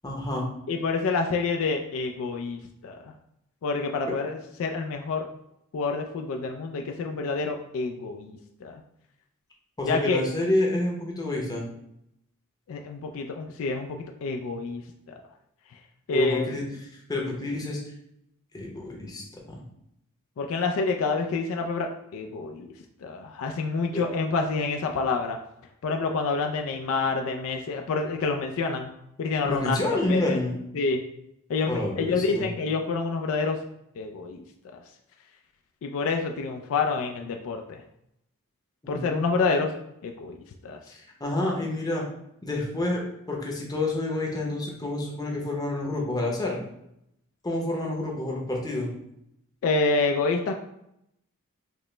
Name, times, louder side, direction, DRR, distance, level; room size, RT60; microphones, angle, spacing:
voice 1, 0.0-0.5 4.1-4.2 9.8-11.7 16.1-16.6 16.9-17.8 18.5-19.6 23.9-24.0 29.4-30.5 31.6-32.5 38.8-39.4 40.9-42.0 42.4-46.6 47.4-48.9, left 1 dB, 15° left, -2 dB, 0.7 m, -28 dB
voice 2, 0.7-3.1 3.6-5.3 5.7-8.8 9.9-10.2 12.7-14.8 15.1-15.2 16.1-16.6 20.4-22.7 23.0-25.4 25.8-28.9 29.2-29.8 30.1-30.4 30.7-31.0 31.5-33.6 34.0-34.4 35.8-37.8 38.9-39.7 40.0-40.8 49.6-50.6, left 4 dB, 65° left, 4 dB, 0.3 m, -28 dB
4.9 x 2.0 x 3.2 m, 0.80 s
head